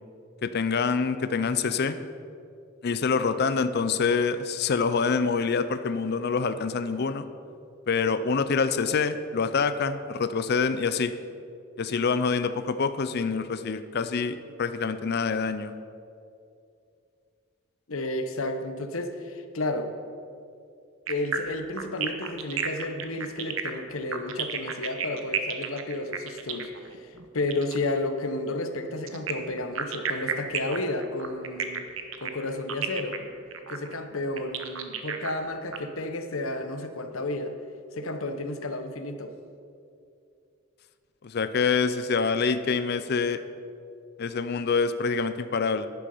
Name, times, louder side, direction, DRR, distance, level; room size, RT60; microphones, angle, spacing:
voice 1, 0.4-2.0 2.8-7.3 7.9-11.1 11.8-15.7 41.2-43.4 44.2-45.9, left 5 dB, 50° left, 12 dB, 0.5 m, -26 dB
voice 2, 17.9-19.9 21.1-26.7 27.0-31.9 32.2-33.2 33.7-37.6 37.9-39.3, left 2 dB, 85° left, 7 dB, 1.0 m, -32 dB
sound 1, 21.1-27.8 29.1-35.8, right 7 dB, 75° right, 1.0 m, -32 dB
10.5 x 10.5 x 5.5 m, 2.5 s
head